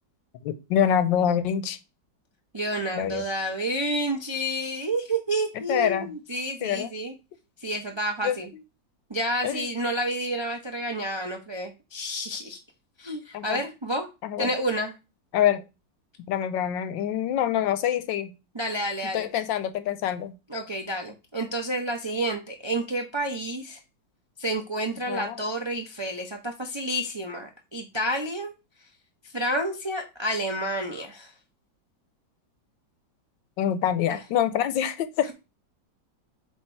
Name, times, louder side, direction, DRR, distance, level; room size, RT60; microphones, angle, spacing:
voice 1, 0.4-1.8 2.9-3.2 5.7-6.1 6.6-6.9 8.2-8.4 9.4-9.7 13.3-13.6 14.2-14.5 15.3-15.6 16.3-18.3 19.1-20.3 25.1-25.4 33.6-35.3, left 10 dB, 90° left, 1.4 m, -25 dB
voice 2, 2.5-7.1 7.6-8.5 9.1-12.6 13.0-14.1 14.4-14.9 18.5-19.3 20.5-23.8 24.4-28.5 29.3-31.3 34.1-34.2, right 1 dB, 45° right, 0.3 m, -29 dB
8.0 x 2.9 x 4.5 m
omnidirectional pair, 2.0 m